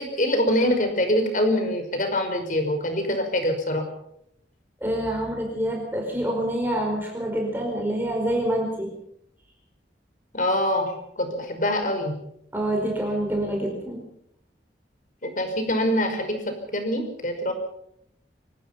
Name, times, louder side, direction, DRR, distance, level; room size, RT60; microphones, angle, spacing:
voice 1, 0.0-3.8 10.3-12.1 15.4-17.5, left 1 dB, 45° left, 6 dB, 5.4 m, -24 dB
voice 2, 4.8-8.9 12.5-14.0, right 1 dB, 10° right, 0 dB, 4.8 m, -26 dB
25.0 x 19.0 x 5.9 m, 0.74 s
head